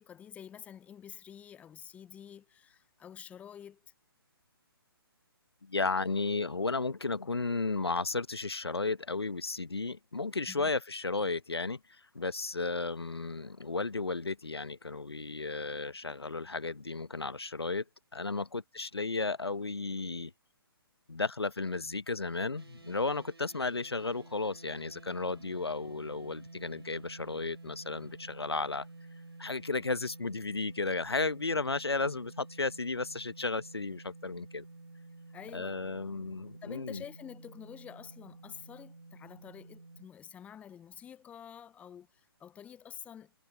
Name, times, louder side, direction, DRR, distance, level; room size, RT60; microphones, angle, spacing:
voice 1, 0.0-3.9 10.5-10.7 35.3-35.8 36.6-43.3, left 9 dB, 10° left, 0.8 m, -49 dB
voice 2, 5.6-11.8 12.1-17.8 18.1-20.3 21.1-28.9 29.4-34.6 35.5-37.0, left 3 dB, 85° left, 1.3 m, -34 dB
sound 1, 22.6-40.1, right 2 dB, 85° right, 3.3 m, -51 dB
figure-of-eight pair, 135°, 13 cm